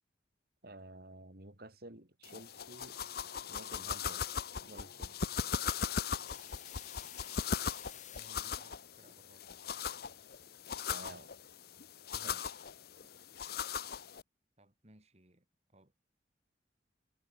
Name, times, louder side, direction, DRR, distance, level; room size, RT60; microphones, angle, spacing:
voice 1, 0.6-3.0 3.5-4.4 4.6-5.1 10.7-11.3 12.1-12.6, right 1 dB, 60° right, 4.3 m, -52 dB
sound 1, 2.2-14.2, left 6 dB, 60° left, 0.8 m, -39 dB
Wind instrument woodwind instrument, 2.5-7.3, right 1 dB, 15° right, 3.2 m, -67 dB
sound 2, 6.2-8.6, left 10 dB, 45° left, 4.6 m, -51 dB
voice 2, 8.1-9.7 14.6-16.0, right 1 dB, 35° right, 4.1 m, -63 dB
head